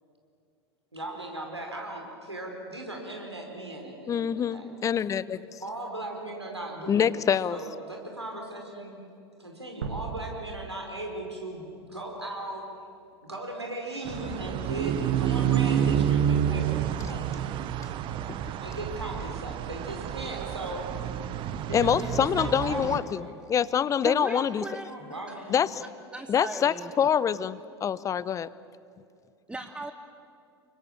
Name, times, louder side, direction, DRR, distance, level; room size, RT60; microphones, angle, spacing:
voice 1, 0.9-4.7 5.6-9.0 9.4-12.7 13.2-17.5 18.6-20.9 21.7-23.4 24.9-25.6, right 1 dB, 85° right, 1 dB, 4.9 m, -38 dB
voice 2, 4.1-5.4 6.9-7.6 21.7-23.2 23.5-24.6 25.5-25.7 26.3-28.5, left 8 dB, 25° left, 18 dB, 0.8 m, -25 dB
sound 1, 9.8-12.2, right 6 dB, 65° right, 1.9 m, -39 dB
sound 2, 14.0-23.0, right 9 dB, 35° right, 1.2 m, -29 dB
voice 3, 24.0-24.9 25.3-25.5 26.1-27.1 29.5-29.9, right 2 dB, 5° right, 8 dB, 1.0 m, -37 dB
29.5 x 24.5 x 7.5 m, 2.5 s
figure-of-eight pair, 80°, 14 cm